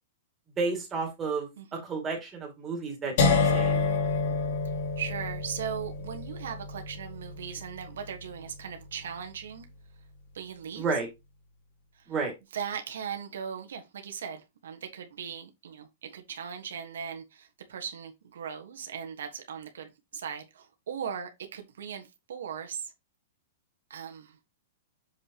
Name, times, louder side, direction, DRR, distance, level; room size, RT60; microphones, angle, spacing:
voice 1, 0.6-1.5 1.8-3.8 10.8-11.1 12.1-12.3, right 4 dB, 15° right, 2.3 m, -31 dB
voice 2, 1.6-1.9 5.0-9.7 10.3-10.8 11.9-12.1 12.5-22.9 23.9-24.4, right 7 dB, 85° right, 1.4 m, -38 dB
sound 1, 3.2-9.1, left 4 dB, 50° left, 2.8 m, -29 dB
6.9 x 5.6 x 2.9 m
supercardioid pair, 165°, 0 cm